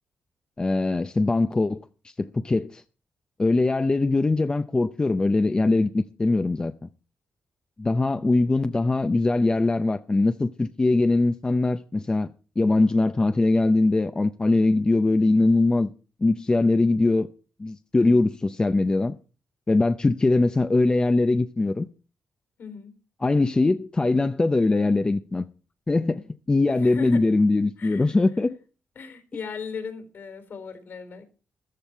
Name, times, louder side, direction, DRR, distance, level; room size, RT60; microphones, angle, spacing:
voice 1, 0.6-1.8 2.2-2.8 3.4-6.7 7.8-12.3 12.6-15.9 16.2-17.3 17.6-19.1 19.7-21.9 23.2-25.4 25.9-28.6, left 2 dB, 20° left, 0.6 m, -22 dB
voice 2, 22.6-22.9 26.7-27.2 27.8-28.2 29.0-31.2, left 5 dB, 65° left, 3.8 m, -38 dB
14.0 x 13.0 x 4.5 m
cardioid pair, 115°, 4 cm